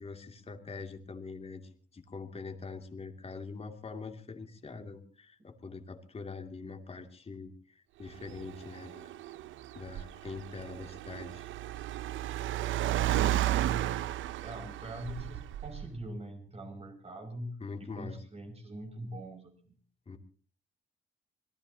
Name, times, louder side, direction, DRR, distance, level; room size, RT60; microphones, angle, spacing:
voice 1, 0.0-9.1 9.7-11.5 17.6-18.2 20.1-20.2, left 4 dB, 30° left, 4 dB, 2.7 m, -44 dB
Car, 8.1-16.0, right 13 dB, 80° right, 0.7 m, -33 dB
voice 2, 14.4-19.8, right 1 dB, 30° right, 5 dB, 6.5 m, -43 dB
26.5 x 18.0 x 2.9 m, 0.40 s
cardioid pair, 90°, 20 cm